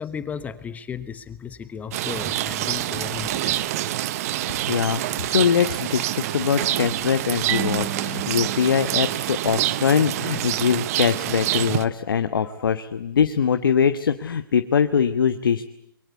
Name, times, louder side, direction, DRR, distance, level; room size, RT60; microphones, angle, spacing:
voice 1, 0.0-3.9 12.4-12.5, left 7 dB, 15° left, 12 dB, 1.0 m, -35 dB
Rain, 1.9-11.8, right 14 dB, 45° right, 0.9 m, -26 dB
voice 2, 4.7-15.6, left 7 dB, 70° left, 9 dB, 1.3 m, -22 dB
Marimba xylophone, 7.5-10.1, right 12 dB, 25° right, 1.2 m, -34 dB
27.0 x 23.0 x 8.2 m, 0.76 s
hypercardioid pair, 130°, 12 cm